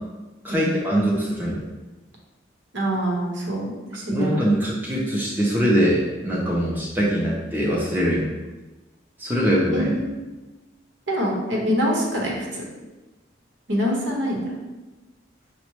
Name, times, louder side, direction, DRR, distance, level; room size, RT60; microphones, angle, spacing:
voice 1, 0.4-1.7 4.1-8.2 9.2-9.9, equal, 10° right, -5 dB, 0.5 m, -22 dB
voice 2, 2.7-4.4 9.7-10.3 11.1-12.6 13.7-14.5, equal, 75° right, -1 dB, 0.8 m, -25 dB
5.7 x 2.1 x 3.1 m, 1.1 s
head